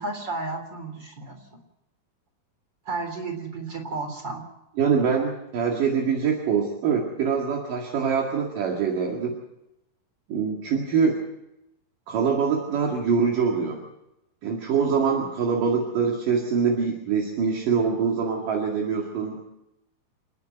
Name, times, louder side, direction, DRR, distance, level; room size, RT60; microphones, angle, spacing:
voice 1, 0.0-1.4 2.9-4.4, right 3 dB, 30° right, 4 dB, 3.9 m, -32 dB
voice 2, 4.8-9.4 10.3-11.2 12.1-13.8 14.4-19.4, right 6 dB, 70° right, 0 dB, 3.7 m, -24 dB
29.0 x 10.0 x 9.2 m, 0.89 s
omnidirectional pair, 4.0 m